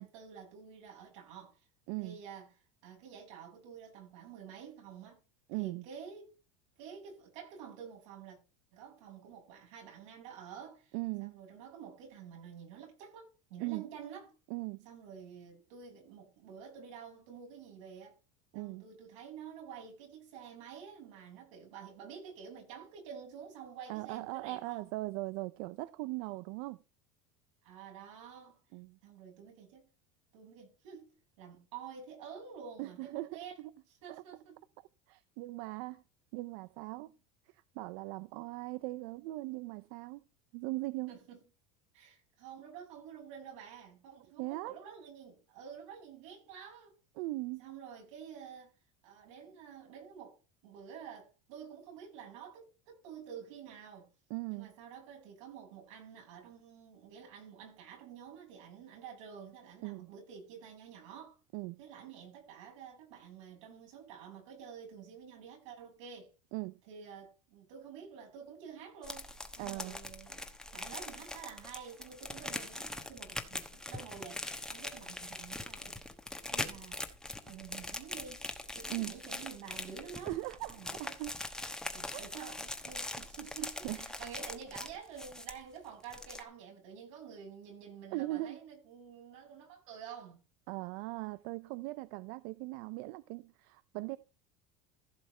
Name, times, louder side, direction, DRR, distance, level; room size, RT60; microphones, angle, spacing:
voice 1, 0.0-1.7 2.0-2.5 2.8-5.2 5.5-6.3 6.8-8.4 8.7-14.3 14.8-18.2 18.5-24.9 27.6-28.6 29.0-29.9 30.3-31.1 31.4-33.6 33.9-34.6 41.1-41.4 41.9-46.9 47.6-48.7 49.0-50.4 50.6-54.1 54.5-61.4 61.8-66.3 66.9-76.0 76.5-77.0 77.5-78.5 78.7-80.4 80.7-81.2 81.9-90.4, right 7 dB, 80° right, 7.5 m, -49 dB
voice 2, 5.5-5.8 10.9-11.4 13.6-13.9 14.5-14.9 18.5-18.8 23.9-26.8 28.7-29.0 32.8-33.4 34.1-34.2 34.8-36.0 36.3-37.1 37.5-40.2 40.5-41.1 44.4-44.8 47.2-47.6 54.3-54.7 59.8-60.1 61.5-61.8 66.5-66.8 69.6-70.0 78.9-79.2 80.2-81.3 82.1-82.3 83.8-84.2 88.1-88.6 90.7-94.2, right 21 dB, 60° right, 0.5 m, -39 dB
sound 1, 69.0-85.8 86.0-86.4, left 2 dB, 5° left, 1.1 m, -42 dB
15.0 x 6.4 x 4.4 m
supercardioid pair, 150°, 16 cm